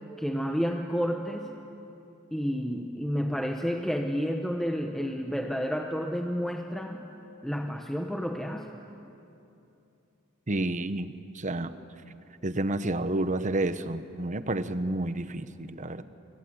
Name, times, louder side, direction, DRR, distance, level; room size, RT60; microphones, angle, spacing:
voice 1, 0.2-1.6 2.3-7.1 7.4-8.8, equal, ahead, 3 dB, 1.0 m, -30 dB
voice 2, 10.5-11.7 12.4-16.0, right 2 dB, 35° right, 12 dB, 1.0 m, -30 dB
26.5 x 22.5 x 9.7 m, 2.8 s
head